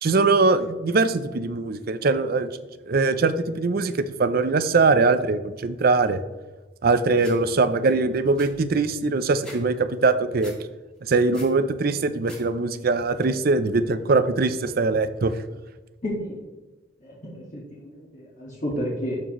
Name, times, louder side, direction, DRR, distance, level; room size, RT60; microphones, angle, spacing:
voice 1, 0.0-2.5 2.9-6.2 6.8-10.5 11.1-15.3, right 3 dB, 50° right, 12 dB, 0.5 m, -22 dB
sound 1, 7.2-7.4 7.8-7.9 8.2-9.6 9.9-10.6 11.0-11.6 12.0-12.4 12.7-13.2, equal, 5° left, 1.8 m, -45 dB
voice 2, 16.0-16.3 17.0-19.2, equal, 40° left, -7 dB, 1.6 m, -31 dB
12.5 x 4.4 x 3.0 m, 1.2 s
head